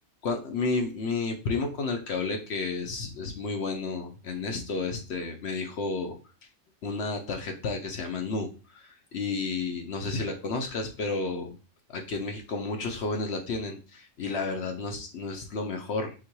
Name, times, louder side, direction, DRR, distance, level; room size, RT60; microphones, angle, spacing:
voice 1, 0.2-6.2 6.8-11.6 11.9-16.1, left 3 dB, 60° left, 4 dB, 0.8 m, -31 dB
5.7 x 2.3 x 3.0 m, 0.34 s
omnidirectional pair, 1.4 m